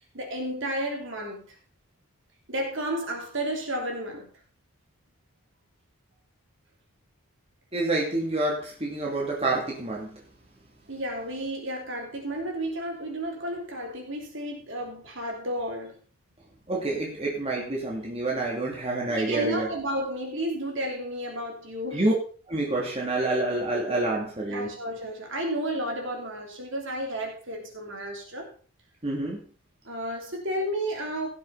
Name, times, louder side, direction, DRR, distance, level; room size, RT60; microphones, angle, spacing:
voice 1, 0.1-1.4 2.5-4.3 10.9-16.0 19.1-22.0 24.5-28.5 29.8-31.3, right 1 dB, 55° right, 1 dB, 3.1 m, -32 dB
voice 2, 7.7-10.1 16.7-19.7 21.9-22.1 22.5-24.7 29.0-29.4, right 2 dB, 25° right, -3 dB, 2.6 m, -27 dB
16.5 x 7.2 x 4.1 m, 0.39 s
head